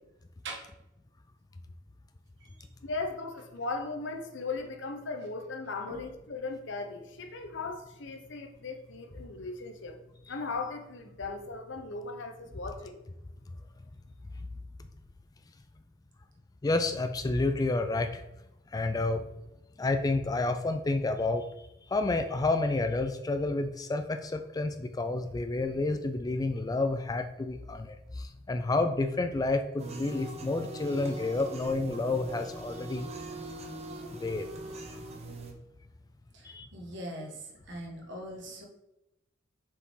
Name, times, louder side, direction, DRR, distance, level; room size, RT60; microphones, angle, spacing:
voice 1, 2.8-10.0 10.3-13.0, left 3 dB, 65° left, 5 dB, 0.9 m, -37 dB
voice 2, 16.6-18.2 18.7-19.3 19.8-33.1 34.2-34.5 36.4-36.7, left 2 dB, 20° left, 8 dB, 0.3 m, -30 dB
sound 1, 29.8-35.5, right 2 dB, 35° right, 0.8 m, -41 dB
voice 3, 36.3-38.7, right 1 dB, 65° right, 0 dB, 1.6 m, -42 dB
6.9 x 4.7 x 3.7 m, 0.92 s
head